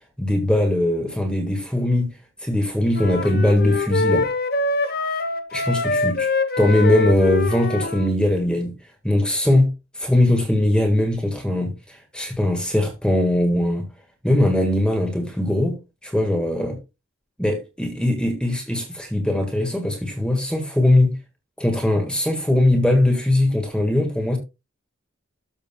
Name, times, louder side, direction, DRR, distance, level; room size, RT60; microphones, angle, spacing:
voice 1, 0.2-2.1 2.4-4.2 5.5-6.3 6.6-8.7 9.0-9.7 9.9-13.8 14.2-16.8 17.4-21.2 21.6-24.4, left 1 dB, 5° left, 1.6 m, -20 dB
sound 1, 2.9-8.1, left 2 dB, 45° left, 0.9 m, -24 dB
13.0 x 6.6 x 2.3 m
head